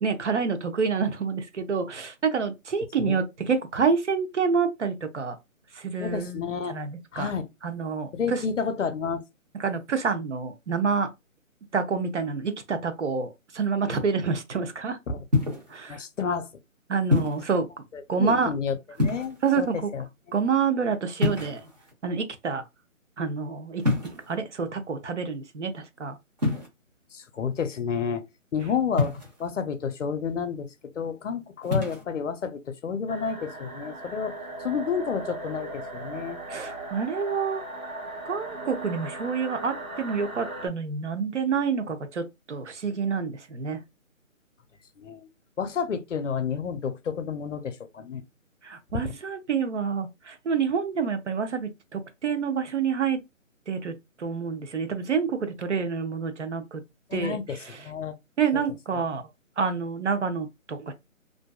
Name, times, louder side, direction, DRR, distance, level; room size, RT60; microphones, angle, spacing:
voice 1, 0.0-5.4 5.8-6.4 6.7-7.3 7.6-8.4 9.6-11.1 11.7-13.3 13.5-15.0 15.7-16.0 16.9-17.7 18.1-18.5 19.4-19.9 20.3-21.6 22.0-22.6 23.2-26.2 36.5-37.6 38.3-43.8 48.6-53.2 53.7-53.9 54.2-56.8 57.1-57.4 58.4-59.2 59.6-60.9, right 5 dB, 60° right, 0.7 m, -28 dB
voice 2, 6.0-6.7 7.1-7.5 8.1-9.2 15.1-15.2 15.9-16.5 17.9-20.4 27.1-28.2 28.5-36.4 45.0-45.3 45.6-48.2 48.9-49.1 57.1-58.1 58.5-58.6, left 6 dB, 65° left, 0.6 m, -30 dB
sound 1, 15.3-15.8 17.1-17.5 18.9-19.6 21.2-21.9 23.8-24.4 26.4-26.7 29.0-29.5 31.6-32.0, left 3 dB, 30° right, 0.9 m, -26 dB
sound 2, 33.1-40.7, right 2 dB, 85° right, 1.1 m, -38 dB
2.5 x 2.2 x 2.2 m
hypercardioid pair, 165°, 41 cm